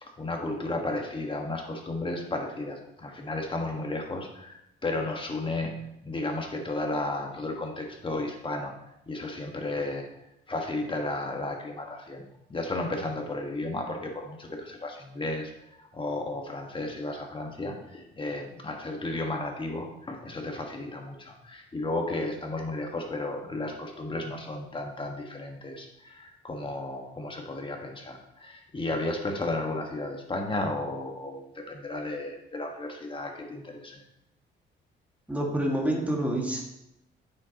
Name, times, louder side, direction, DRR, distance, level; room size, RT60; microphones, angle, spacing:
voice 1, 0.0-5.7 6.0-8.8 9.1-10.1 10.5-12.2 12.5-34.0, left 2 dB, 25° left, 2 dB, 1.5 m, -33 dB
voice 2, 35.3-36.6, right 1 dB, 5° right, -1 dB, 1.9 m, -27 dB
8.4 x 6.5 x 3.0 m, 0.82 s
cardioid pair, 90°, 20 cm